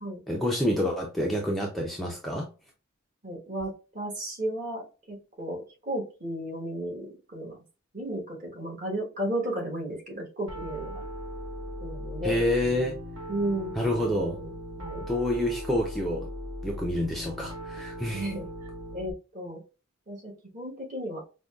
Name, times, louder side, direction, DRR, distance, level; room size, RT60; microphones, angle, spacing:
voice 1, 0.3-2.5 12.2-13.0 13.8-14.4 15.1-16.3 16.6-18.3, left 1 dB, ahead, -1 dB, 0.4 m, -28 dB
voice 2, 3.2-7.6 7.9-11.0 11.8-12.4 13.3-13.7 14.4-14.5 14.8-15.1 18.1-18.4 18.9-19.6 20.1-21.2, right 1 dB, 40° right, -1 dB, 1.3 m, -34 dB
Piano, 10.5-19.1, equal, 85° right, 1.0 m, -38 dB
5.0 x 2.2 x 2.3 m, 0.32 s
head